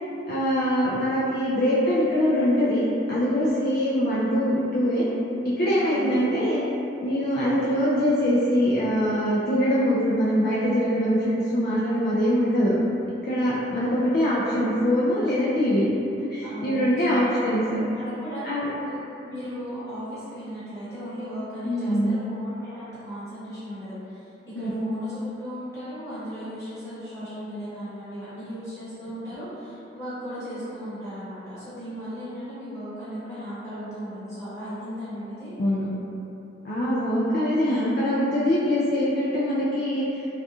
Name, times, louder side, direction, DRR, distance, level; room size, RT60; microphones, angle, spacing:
voice 1, 0.3-5.0 5.4-6.6 7.0-12.7 13.2-15.9 16.3-17.9 18.4-18.7 21.6-22.2 24.6-24.7 35.6-35.9 36.6-40.1, equal, 55° left, -8 dB, 0.3 m, -23 dB
voice 2, 16.4-17.4 17.9-35.5, equal, 15° left, -14 dB, 1.1 m, -36 dB
2.7 x 2.3 x 2.3 m, 2.9 s
head